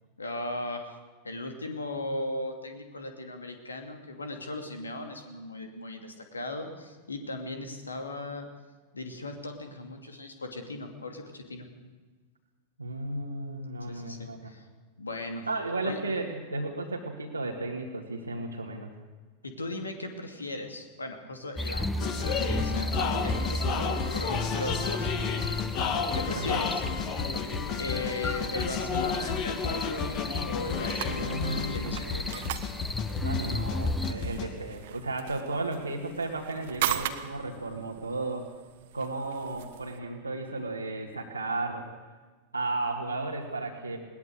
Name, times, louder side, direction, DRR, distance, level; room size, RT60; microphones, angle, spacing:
voice 1, 0.2-0.9 1.2-8.5 8.9-11.7 13.8-14.6 15.0-15.5 15.8-16.0 19.4-25.4 26.1-26.8 27.8-32.4, left 2 dB, 75° left, 5 dB, 2.6 m, -37 dB
voice 2, 12.8-14.5 15.5-18.9 26.3-26.6 31.1-32.3 33.2-38.5 38.9-41.9 42.5-44.0, right 2 dB, 85° right, -4 dB, 2.0 m, -34 dB
sound 1, 21.6-34.1, left 2 dB, 10° left, 0.9 m, -34 dB
sound 2, 22.0-34.5, left 5 dB, 40° left, 2.4 m, -32 dB
sound 3, 30.2-40.0, right 12 dB, 55° right, 1.4 m, -39 dB
21.0 x 19.0 x 6.6 m, 1.3 s
figure-of-eight pair, 90°, 0 cm